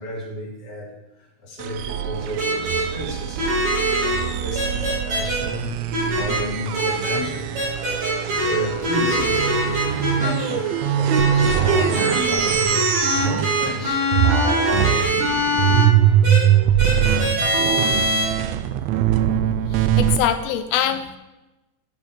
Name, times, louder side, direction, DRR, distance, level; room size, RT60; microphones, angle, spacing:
voice 1, 0.0-3.4 4.0-7.7 8.2-12.9 13.2-14.2 14.8-14.9 15.5-15.8, equal, 45° left, -3 dB, 3.5 m, -32 dB
sound 1, 1.6-13.9 14.1-20.2, right 10 dB, 85° right, 1.5 m, -22 dB
sound 2, 2.4-2.8 3.4-4.1 4.5-5.4 5.9-6.4 6.7-7.1 7.5-8.5 8.8-10.3 11.1-15.8 16.2-16.4 16.8-18.2, equal, 60° right, 5.2 m, -23 dB
sound 3, 3.9-16.9, right 1 dB, 30° right, 2.2 m, -39 dB
voice 2, 19.7-21.2, left 10 dB, 85° left, 9 dB, 1.5 m, -23 dB
9.1 x 8.0 x 4.7 m, 0.99 s
omnidirectional pair, 3.6 m